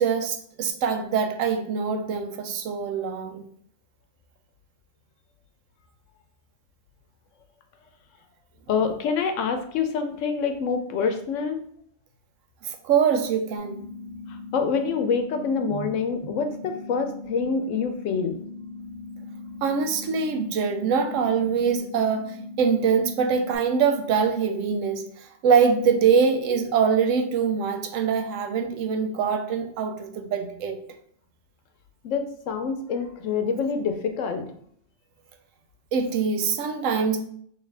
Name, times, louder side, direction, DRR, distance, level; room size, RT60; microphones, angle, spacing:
voice 1, 0.0-3.4 12.6-13.8 15.7-15.9 19.6-30.8 35.9-37.2, right 6 dB, 85° right, 7 dB, 1.0 m, -24 dB
voice 2, 8.7-11.6 14.5-18.4 32.0-34.5, left 5 dB, 80° left, 6 dB, 0.9 m, -26 dB
sound 1, 13.6-23.6, left 3 dB, 45° right, 1.5 m, -40 dB
3.8 x 3.0 x 3.3 m, 0.64 s
omnidirectional pair, 1.3 m